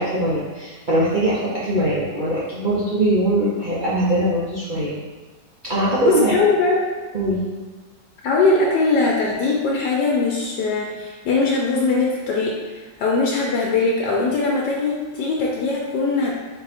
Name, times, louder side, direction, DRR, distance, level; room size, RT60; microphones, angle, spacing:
voice 1, 0.0-4.9 5.6-6.3 7.1-7.4, right 1 dB, 70° right, -8 dB, 0.4 m, -21 dB
voice 2, 6.0-6.9 8.2-16.3, left 3 dB, 85° left, -3 dB, 1.2 m, -21 dB
3.9 x 2.7 x 4.1 m, 1.3 s
omnidirectional pair, 1.8 m